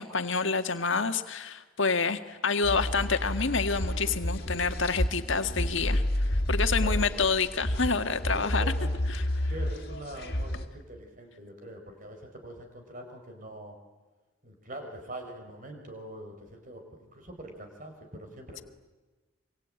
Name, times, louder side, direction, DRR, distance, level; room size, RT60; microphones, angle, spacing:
voice 1, 0.0-8.7 9.1-9.2, left 4 dB, 65° left, 8 dB, 1.7 m, -28 dB
sound 1, 2.6-10.7, left 1 dB, 50° left, 2.6 m, -30 dB
voice 2, 6.7-7.3 8.3-8.9 9.5-13.7 14.4-18.6, right 1 dB, 40° right, 4 dB, 4.9 m, -44 dB
25.5 x 25.0 x 8.9 m, 1.2 s
head